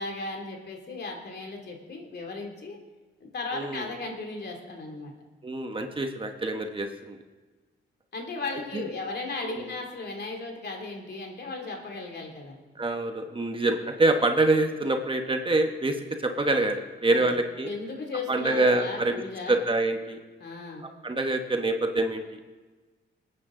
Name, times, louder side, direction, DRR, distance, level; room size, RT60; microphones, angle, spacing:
voice 1, 0.0-2.8 3.2-5.1 8.1-12.6 17.1-17.3 17.6-19.5 20.4-20.9, left 3 dB, 55° left, 1 dB, 2.8 m, -36 dB
voice 2, 3.5-3.9 5.4-7.2 8.7-8.8 9.5-9.7 12.7-17.7 18.3-20.2 20.8-22.4, right 2 dB, 25° right, 4 dB, 1.2 m, -26 dB
20.5 x 9.3 x 3.8 m, 1.3 s
cardioid pair, 90°, 20 cm